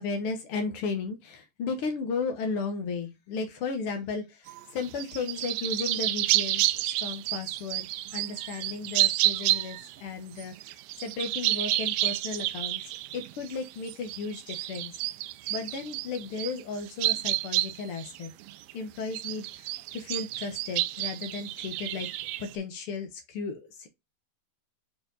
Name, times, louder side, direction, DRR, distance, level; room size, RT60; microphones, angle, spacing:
voice 1, 0.0-12.8 13.1-15.0 15.5-18.3 18.7-22.1 22.4-23.9, left 4 dB, 80° left, 1.2 m, -35 dB
sound 1, 4.5-10.0 10.4-18.7 19.1-22.5, right 17 dB, 85° right, 2.3 m, -30 dB
6.6 x 4.5 x 3.9 m
omnidirectional pair, 4.0 m